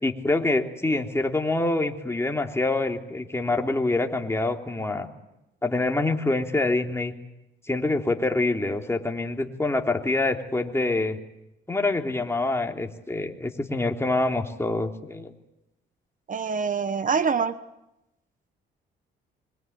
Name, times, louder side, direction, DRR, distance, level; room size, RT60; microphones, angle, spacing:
voice 1, 0.0-5.1 5.6-7.1 7.7-11.2 11.7-15.3, left 2 dB, 15° left, 3 dB, 3.3 m, -26 dB
voice 2, 16.3-17.5, right 5 dB, 40° right, 14 dB, 1.3 m, -25 dB
25.0 x 24.5 x 9.4 m, 0.91 s
cardioid pair, 90°, 20 cm